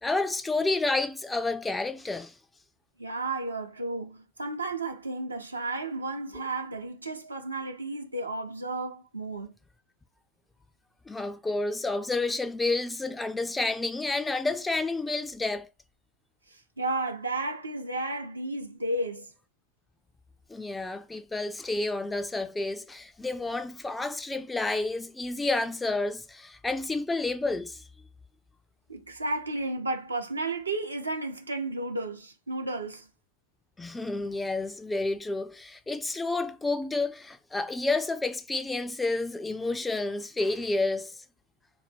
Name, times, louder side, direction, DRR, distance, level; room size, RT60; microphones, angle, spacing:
voice 1, 0.0-2.3 11.1-15.7 20.5-27.8 33.8-41.2, left 2 dB, 10° left, 0.3 m, -30 dB
voice 2, 3.0-9.5 16.5-19.3 28.9-33.1, right 2 dB, 80° right, 0.6 m, -33 dB
2.5 x 2.1 x 3.4 m
figure-of-eight pair, 90°, 0 cm